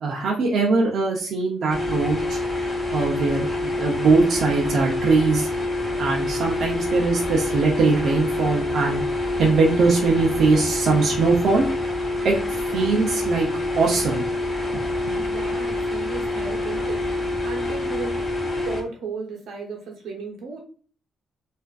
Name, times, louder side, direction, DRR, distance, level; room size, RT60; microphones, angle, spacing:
voice 1, 0.0-2.4 2.9-5.5 6.0-9.0 9.4-11.7 12.2-13.5 13.7-14.3 14.7-15.2, right 4 dB, 60° right, -2 dB, 0.5 m, -21 dB
sound 1, 1.7-18.8, left 2 dB, 25° left, 0.8 m, -26 dB
voice 2, 15.1-18.2 18.6-20.6, right 4 dB, 90° right, 0 dB, 0.8 m, -35 dB
2.5 x 2.4 x 2.3 m, 0.41 s
cardioid pair, 145°, 0 cm